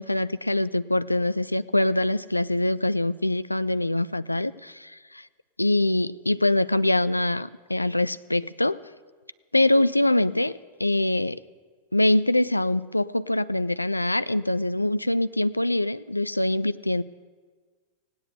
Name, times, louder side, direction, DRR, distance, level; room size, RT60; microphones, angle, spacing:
voice 1, 0.0-5.3 5.6-8.8 9.5-11.4 11.9-17.0, left 1 dB, 85° left, 16 dB, 0.3 m, -24 dB
17.0 x 9.5 x 8.0 m, 1.4 s
figure-of-eight pair, 90°, 0 cm